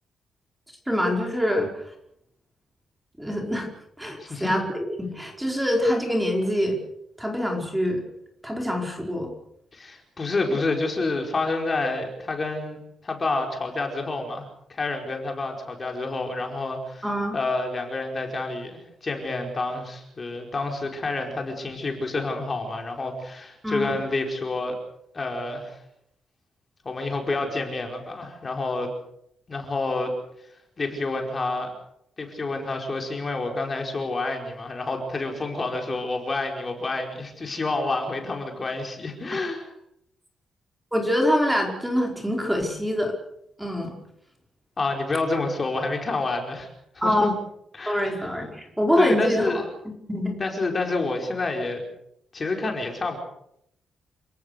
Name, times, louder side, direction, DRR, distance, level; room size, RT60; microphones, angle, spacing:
voice 1, 0.9-1.7 3.2-3.7 4.0-6.8 7.2-8.0 8.4-9.3 17.0-17.4 23.6-23.9 40.9-43.1 43.6-43.9 47.0-47.3 47.9-50.4, left 1 dB, 5° right, 1 dB, 5.0 m, -25 dB
voice 2, 4.2-4.6 9.7-17.1 17.3-24.8 25.1-25.8 26.8-28.9 29.5-30.1 30.8-31.7 32.2-39.7 44.8-46.7 46.9-47.3 47.7-48.3 49.0-49.7 50.4-51.8 52.3-53.2, left 3 dB, 30° left, 3 dB, 4.8 m, -28 dB
29.5 x 18.0 x 6.6 m, 0.75 s
cardioid pair, 145°, 0 cm